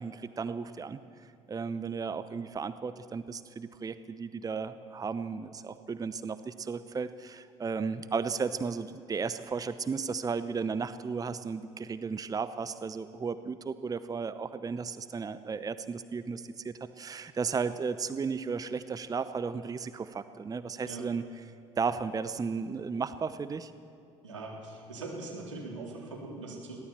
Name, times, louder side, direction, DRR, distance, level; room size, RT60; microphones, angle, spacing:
voice 1, 0.0-23.7, right 5 dB, 25° right, 13 dB, 0.8 m, -34 dB
voice 2, 24.2-26.8, right 3 dB, 80° right, -2 dB, 3.8 m, -41 dB
22.5 x 17.0 x 7.4 m, 2.6 s
figure-of-eight pair, 55°, 15 cm